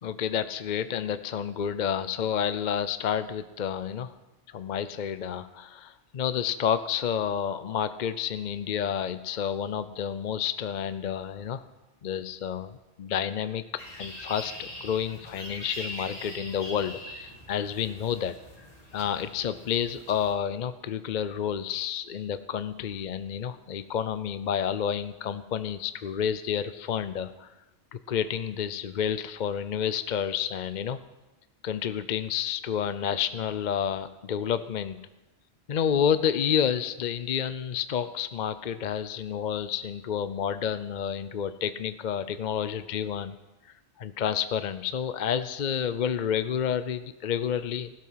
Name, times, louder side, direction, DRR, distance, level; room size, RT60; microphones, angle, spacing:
voice 1, 0.0-4.1 4.5-11.6 12.0-12.7 13.0-13.6 13.9-18.3 18.9-27.5 28.1-31.0 31.6-35.1 35.7-43.3 43.7-47.9, left 8 dB, 50° left, 12 dB, 0.6 m, -30 dB
sound 1, 13.8-20.3, left 1 dB, 30° left, 2.7 m, -42 dB
16.0 x 12.0 x 5.7 m, 1.1 s
omnidirectional pair, 1.2 m